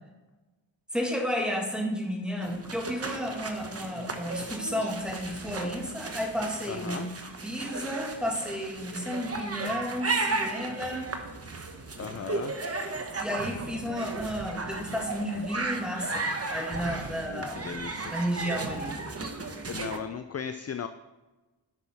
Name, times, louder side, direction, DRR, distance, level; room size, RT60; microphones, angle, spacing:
voice 1, 0.9-7.1 7.4-11.1 12.2-12.4 12.9-17.6 18.0-19.0 19.6-19.7, equal, ahead, 0 dB, 1.8 m, -32 dB
sound 1, 2.4-20.0, right 3 dB, 30° right, 1.0 m, -35 dB
voice 2, 6.7-7.1 12.0-12.6 17.1-18.1 19.7-20.9, left 7 dB, 35° left, 9 dB, 0.4 m, -37 dB
10.5 x 6.1 x 4.3 m, 1.2 s
wide cardioid pair, 95°, 45 cm